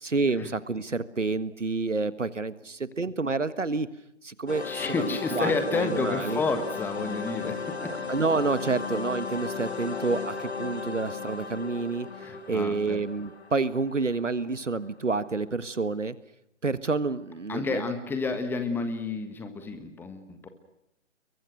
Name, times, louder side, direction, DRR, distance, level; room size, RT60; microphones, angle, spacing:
voice 1, 0.0-3.9 4.2-5.0 5.3-6.4 7.8-12.1 12.5-16.2 16.6-17.9, right 3 dB, 80° right, 15 dB, 1.7 m, -29 dB
sound 1, 4.5-15.1, left 5 dB, 60° left, 3.3 m, -36 dB
voice 2, 4.6-8.0 12.2-13.0 17.5-20.5, left 3 dB, 5° left, 8 dB, 1.5 m, -30 dB
28.0 x 23.0 x 6.3 m, 0.82 s
figure-of-eight pair, 140°, 36 cm